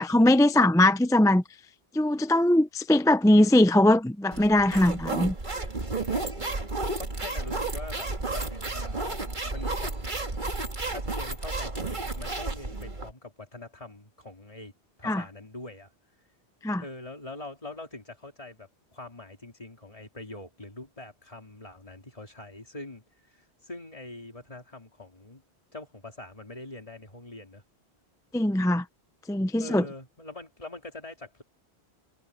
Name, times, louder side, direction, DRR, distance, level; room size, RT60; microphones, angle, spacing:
voice 1, 0.0-1.4 1.9-5.3 15.0-15.2 16.6-16.8 28.3-28.8 29.3-29.8, left 1 dB, 5° left, 0.4 m, -21 dB
sound 1, 4.3-13.1, right 3 dB, 45° right, 2.3 m, -32 dB
voice 2, 5.9-6.5 7.0-9.2 9.5-9.9 10.9-14.7 15.0-15.9 16.8-25.4 25.7-27.6 29.6-31.4, left 2 dB, 30° left, 3.1 m, -43 dB
omnidirectional pair, 1.1 m